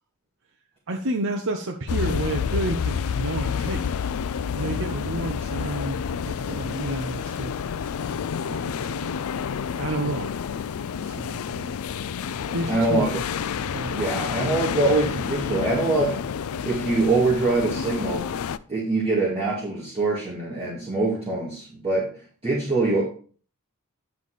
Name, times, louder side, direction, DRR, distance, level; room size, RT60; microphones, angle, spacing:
voice 1, 0.9-3.8 4.5-7.5 8.4-9.0 9.8-10.3 11.0-11.7 12.1-13.2 13.6-14.1, right 2 dB, 60° right, 2 dB, 0.9 m, -30 dB
sound 1, 1.9-18.6, left 7 dB, 70° left, 0.4 m, -29 dB
voice 2, 12.7-13.1 13.9-16.2 16.6-18.3 18.7-22.1 22.4-23.0, right 2 dB, 25° right, -8 dB, 2.3 m, -24 dB
10.5 x 4.2 x 4.9 m, 0.43 s
head